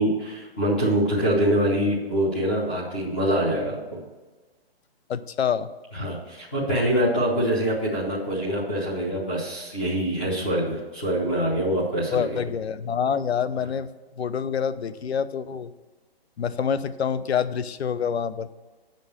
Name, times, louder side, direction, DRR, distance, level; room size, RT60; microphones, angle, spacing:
voice 1, 0.0-3.8 5.9-12.3, right 1 dB, 10° left, -5 dB, 0.6 m, -24 dB
voice 2, 5.1-5.7 12.1-13.9 14.2-15.7 16.4-18.5, left 7 dB, 85° left, 14 dB, 0.7 m, -26 dB
7.6 x 5.3 x 6.6 m, 1.3 s
hypercardioid pair, 175°, 31 cm